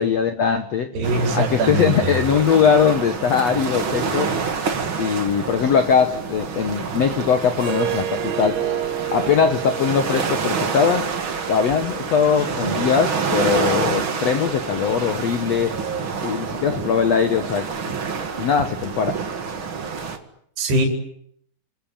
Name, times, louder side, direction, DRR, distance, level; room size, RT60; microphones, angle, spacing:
voice 1, 0.0-0.9 1.3-4.3 5.0-8.6 9.1-11.1 11.5-15.7 16.2-17.7 18.4-19.2, left 7 dB, 90° left, 8 dB, 1.4 m, -20 dB
voice 2, 0.9-2.2 20.6-20.9, right 2 dB, 65° right, 2 dB, 6.0 m, -22 dB
sound 1, 1.0-20.2, right 5 dB, 40° right, 1.9 m, -27 dB
Harp, 7.5-12.7, right 10 dB, 80° right, 5.5 m, -30 dB
29.0 x 19.0 x 8.8 m, 0.69 s
omnidirectional pair, 5.2 m